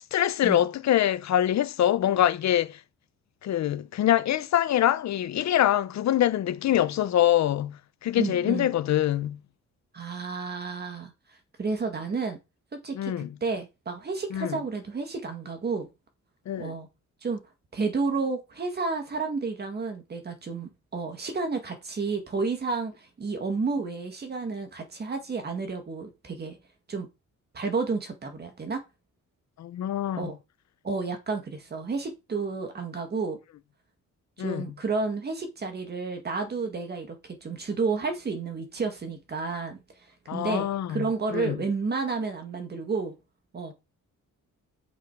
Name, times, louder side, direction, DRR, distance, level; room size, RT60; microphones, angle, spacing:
voice 1, 0.1-2.8 3.4-9.4 12.9-13.3 14.3-14.6 16.5-16.7 29.6-30.3 34.4-34.7 40.3-41.6, left 12 dB, 60° left, 0.8 m, -25 dB
voice 2, 8.2-8.7 9.9-11.1 11.6-12.4 12.8-15.9 16.6-16.9 17.2-17.4 17.7-26.6 26.9-27.1 27.5-28.8 30.2-30.4 30.8-33.4 34.4-39.8 40.3-43.1 43.5-43.7, right 4 dB, 30° right, 1.9 m, -31 dB
8.4 x 7.2 x 4.7 m
wide cardioid pair, 165°, 32 cm